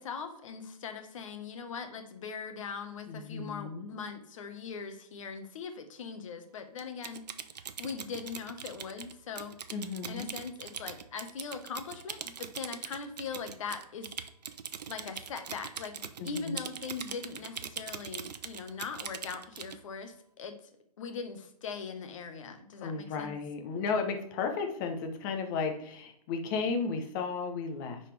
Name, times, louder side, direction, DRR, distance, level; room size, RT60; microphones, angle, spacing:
voice 1, 0.0-7.3 7.8-9.6 10.1-14.1 14.9-16.0 16.2-20.6 21.0-23.4, left 5 dB, 50° left, 7 dB, 1.2 m, -40 dB
voice 2, 3.1-3.9 9.7-10.3 16.2-16.6 22.8-28.0, left 5 dB, 30° left, 5 dB, 1.0 m, -34 dB
Typing, 6.8-19.8, right 7 dB, 80° right, 0.7 m, -42 dB
10.5 x 4.2 x 3.4 m, 0.72 s
hypercardioid pair, 155°, 21 cm